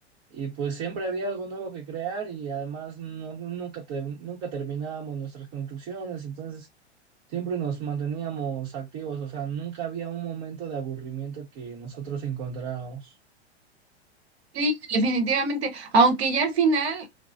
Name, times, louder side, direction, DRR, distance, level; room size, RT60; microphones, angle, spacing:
voice 1, 0.3-6.7 7.3-13.2, right 7 dB, 45° right, 0.9 m, -33 dB
voice 2, 14.5-17.1, right 3 dB, 65° right, 1.0 m, -23 dB
3.0 x 2.0 x 2.5 m
figure-of-eight pair, 100°, 34 cm